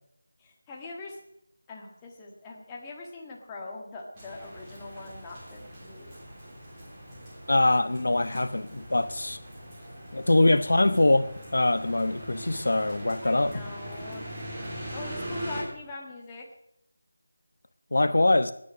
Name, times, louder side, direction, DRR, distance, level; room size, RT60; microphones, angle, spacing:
voice 1, 0.4-1.2 1.7-6.1 8.3-8.4 13.2-14.2 14.9-16.5, left 3 dB, 10° left, 1.5 m, -42 dB
sound 1, 4.1-15.6, equal, 15° right, 3.4 m, -41 dB
voice 2, 7.5-9.4 10.1-13.6 17.9-18.5, left 2 dB, 65° left, 0.9 m, -23 dB
21.0 x 9.7 x 6.2 m
figure-of-eight pair, 175°, 0 cm